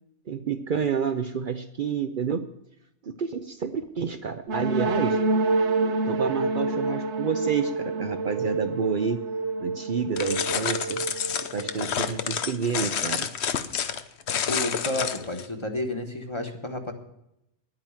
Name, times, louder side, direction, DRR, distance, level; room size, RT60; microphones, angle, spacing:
voice 1, 0.3-2.4 3.0-5.2 6.1-9.2 9.6-11.0 11.5-13.3, right 6 dB, 55° right, 8 dB, 0.8 m, -29 dB
sound 1, 4.5-12.2, right 3 dB, 85° right, 1.3 m, -28 dB
sound 2, 10.2-15.5, left 8 dB, 75° left, 1.1 m, -29 dB
voice 2, 14.5-16.9, left 1 dB, 25° left, 4 dB, 1.4 m, -31 dB
10.5 x 8.9 x 8.7 m, 0.82 s
omnidirectional pair, 1.1 m